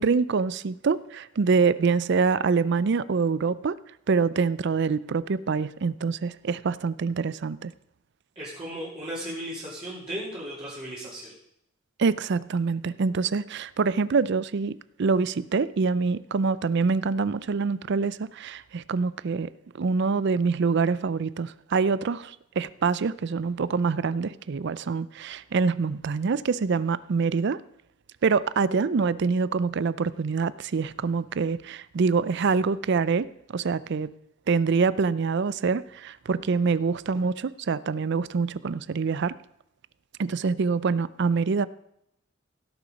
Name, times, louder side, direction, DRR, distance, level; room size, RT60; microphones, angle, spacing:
voice 1, 0.0-3.7 4.1-7.7 12.0-19.5 19.8-27.6 28.2-34.1 34.5-39.4 40.2-41.7, right 5 dB, 60° right, 18 dB, 0.4 m, -25 dB
voice 2, 8.3-11.3, equal, 25° right, -9 dB, 3.0 m, -36 dB
17.0 x 6.9 x 5.2 m, 0.78 s
head